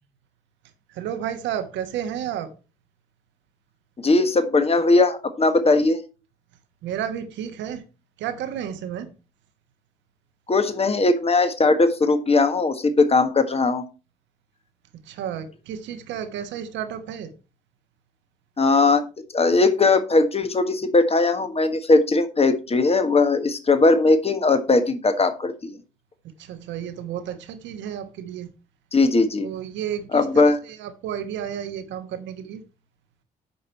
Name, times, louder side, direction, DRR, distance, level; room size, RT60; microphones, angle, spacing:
voice 1, 0.9-2.5 6.8-7.8 8.2-9.1 15.0-17.3 26.2-28.5 29.4-32.6, right 9 dB, 75° right, 1.2 m, -32 dB
voice 2, 4.0-6.0 10.5-13.8 18.6-19.0 19.3-25.8 28.9-29.5 30.1-30.6, left 3 dB, 30° left, 1.4 m, -19 dB
9.5 x 5.4 x 4.5 m
hypercardioid pair, 45°, 19 cm